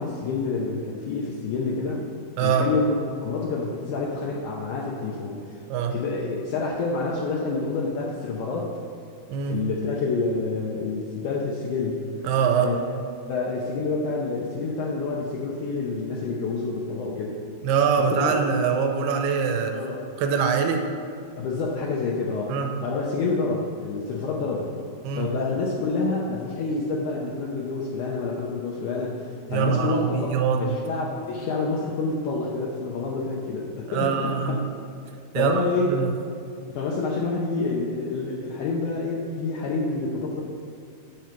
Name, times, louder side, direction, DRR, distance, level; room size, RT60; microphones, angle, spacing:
voice 1, 0.0-2.0 2.4-5.6 5.9-8.7 9.5-12.0 12.6-13.0 13.3-17.4 18.0-18.4 19.7-20.0 21.4-24.7 25.2-30.3 30.6-34.3 35.4-36.0 36.7-40.4, left 3 dB, 80° left, -3 dB, 1.8 m, -28 dB
voice 2, 2.4-2.7 5.7-6.0 9.3-9.6 12.2-12.7 17.6-19.8 20.2-20.9 22.5-22.7 25.0-25.3 29.5-30.8 33.9-34.6 35.3-35.6 35.9-36.1, right 6 dB, 90° right, 4 dB, 2.7 m, -23 dB
10.0 x 4.5 x 6.8 m, 2.4 s
omnidirectional pair, 4.6 m